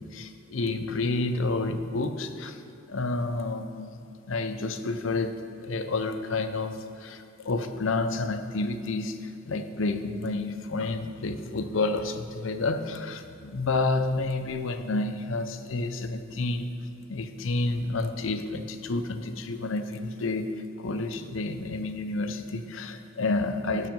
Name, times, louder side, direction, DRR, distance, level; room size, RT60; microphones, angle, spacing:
voice 1, 0.0-2.6 2.9-4.0 4.3-16.7 17.1-23.9, left 3 dB, 75° left, 8 dB, 0.6 m, -30 dB
10.5 x 6.5 x 5.2 m, 2.7 s
head